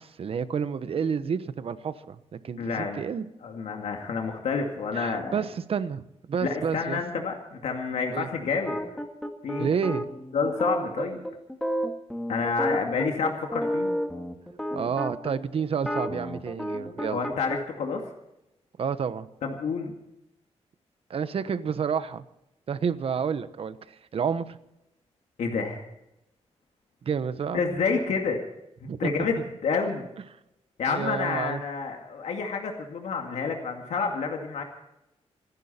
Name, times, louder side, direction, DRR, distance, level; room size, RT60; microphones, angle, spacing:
voice 1, 0.0-3.2 4.9-7.0 8.1-8.3 9.6-10.1 14.7-17.2 18.8-19.3 21.1-22.2 22.7-24.6 27.0-27.6 28.9-29.4 30.9-31.6, right 6 dB, 55° right, 13 dB, 1.1 m, -30 dB
voice 2, 2.6-3.0 3.4-5.3 6.4-8.8 9.4-9.7 10.3-11.2 12.3-13.9 17.1-18.1 19.4-20.0 25.4-25.8 27.5-28.4 28.8-30.1 30.8-34.6, left 5 dB, 80° left, 2 dB, 2.3 m, -29 dB
sound 1, 8.7-15.3 15.7-17.6, equal, 5° left, 1.9 m, -31 dB
26.5 x 11.0 x 4.4 m, 0.87 s
cardioid pair, 115°, 11 cm